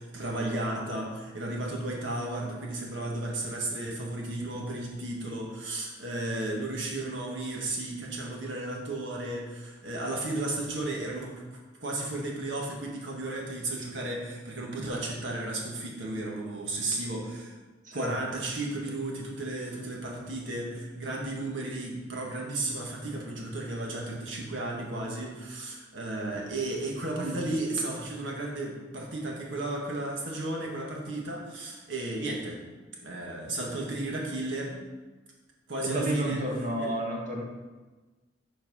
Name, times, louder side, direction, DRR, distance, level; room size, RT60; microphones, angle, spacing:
voice 1, 0.0-11.3 11.8-17.5 17.9-32.6 33.0-34.7 35.7-36.4 36.8-36.9, right 2 dB, 80° right, -2 dB, 1.7 m, -34 dB
voice 2, 35.8-37.4, right 1 dB, 45° right, -1 dB, 1.6 m, -31 dB
7.6 x 4.5 x 5.5 m, 1.3 s
head